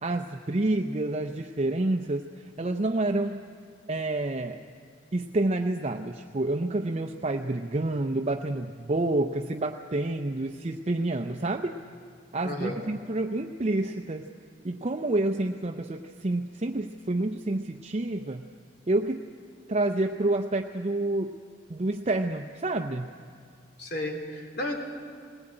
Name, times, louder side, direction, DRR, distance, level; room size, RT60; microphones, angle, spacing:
voice 1, 0.0-3.4 3.9-4.6 5.1-11.8 12.3-14.3 14.6-18.5 18.9-19.3 19.7-21.4 21.7-23.1, right 2 dB, 35° right, 4 dB, 0.6 m, -28 dB
voice 2, 12.4-12.8 23.8-24.8, left 1 dB, 55° left, 2 dB, 3.3 m, -33 dB
20.0 x 18.5 x 8.8 m, 2.3 s
head